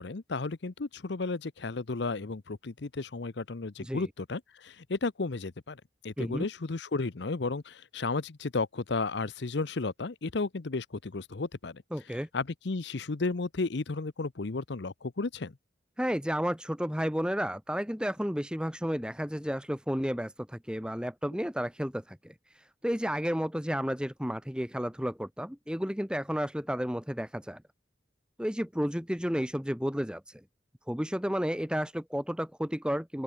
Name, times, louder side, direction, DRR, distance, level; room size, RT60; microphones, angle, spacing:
voice 1, 0.0-5.8 6.0-11.8 12.3-15.5, left 3 dB, 65° left, 0.7 m, -33 dB
voice 2, 11.9-12.3 16.0-27.6 28.4-30.4 30.9-33.2, equal, 5° right, 2.3 m, -32 dB
open air
head